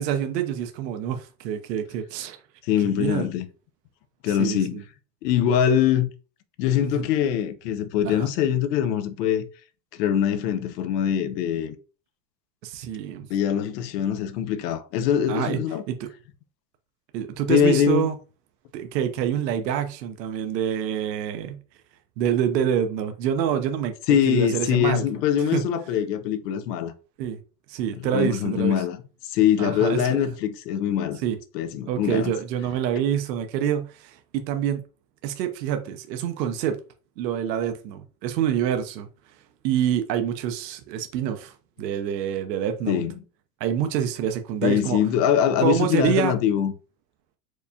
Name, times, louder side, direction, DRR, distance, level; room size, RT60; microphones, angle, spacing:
voice 1, 0.0-2.4 2.8-3.3 4.3-4.8 6.8-7.1 8.0-8.3 12.6-13.3 15.3-15.6 15.9-16.1 17.1-18.1 18.7-21.6 22.2-23.9 24.3-25.1 25.5-25.6 27.2-27.4 27.7-28.8 29.6-30.2 31.2-31.4 31.9-34.8 35.2-36.8 37.2-39.1 39.6-41.5 41.8-43.0 43.6-45.0 45.6-46.3, right 9 dB, 85° right, 0.7 m, -26 dB
voice 2, 2.6-3.5 4.2-4.8 5.2-6.1 6.6-9.5 9.9-11.8 13.3-15.8 17.5-18.1 24.1-26.9 28.1-29.0 29.2-31.2 31.5-32.3 42.9-43.1 44.6-46.7, left 9 dB, 75° left, 0.7 m, -23 dB
4.6 x 2.2 x 2.7 m
supercardioid pair, 115°, 49 cm